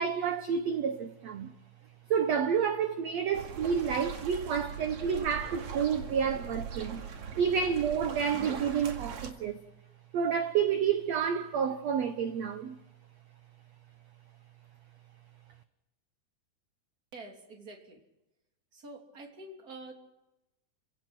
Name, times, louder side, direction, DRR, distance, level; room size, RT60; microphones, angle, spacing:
voice 1, 0.0-1.5 2.1-7.0 7.3-9.6 10.1-12.8, right 7 dB, 75° right, 1.5 m, -29 dB
sound 1, 3.3-9.3, right 6 dB, 55° right, 3.2 m, -40 dB
voice 2, 17.1-18.0 18.7-19.9, right 2 dB, 25° right, 3.2 m, -47 dB
30.0 x 17.5 x 6.1 m
omnidirectional pair, 4.4 m